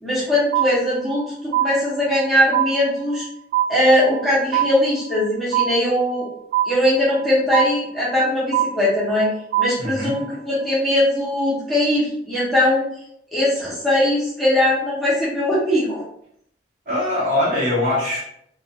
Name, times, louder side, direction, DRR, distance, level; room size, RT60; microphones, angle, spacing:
voice 1, 0.0-3.3 3.7-6.3 6.6-9.3 9.6-12.8 13.3-16.0, left 1 dB, ahead, -10 dB, 0.8 m, -20 dB
sound 1, 0.5-1.2 1.5-2.3 2.5-3.3 3.5-4.3 4.5-5.3 5.5-6.3 6.5-7.3 7.5-8.3 8.5-9.3 9.5-10.3, right 11 dB, 80° right, 0.3 m, -22 dB
voice 2, 9.8-10.2 16.9-18.2, left 1 dB, 45° right, -6 dB, 1.0 m, -22 dB
2.4 x 2.3 x 2.6 m, 0.72 s
head